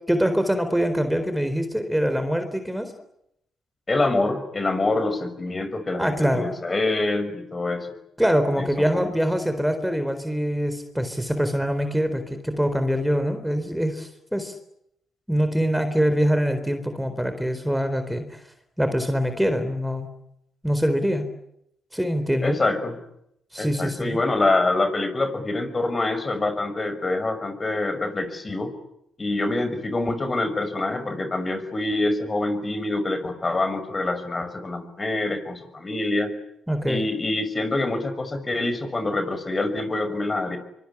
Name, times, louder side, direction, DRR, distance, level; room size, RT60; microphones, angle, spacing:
voice 1, 0.0-2.9 6.0-6.6 8.2-14.5 15.3-18.4 18.8-20.1 20.6-21.3 21.9-22.6 23.5-24.2 36.7-37.0, equal, 5° right, 9 dB, 4.1 m, -24 dB
voice 2, 3.9-7.9 8.6-9.1 22.4-23.0 23.6-28.7 29.2-36.3 36.9-40.6, left 2 dB, 30° left, 9 dB, 6.2 m, -25 dB
24.5 x 24.0 x 10.0 m, 0.78 s
supercardioid pair, 55°, 0 cm